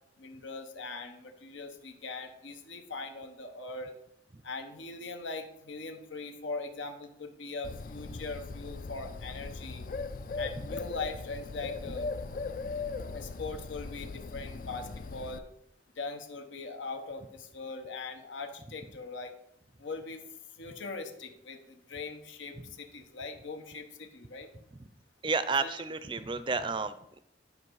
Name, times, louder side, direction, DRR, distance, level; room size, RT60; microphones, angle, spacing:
voice 1, 0.2-3.9 4.4-9.9 10.3-12.1 13.1-15.4 15.9-19.3 19.8-20.2 20.6-24.5 25.6-25.8, left 3 dB, 85° left, 6 dB, 1.1 m, -41 dB
Bird, 7.6-15.4, left 4 dB, 45° left, 0.4 m, -39 dB
voice 2, 25.2-27.2, right 4 dB, 25° right, 13 dB, 0.5 m, -31 dB
11.0 x 5.2 x 4.7 m, 0.78 s
head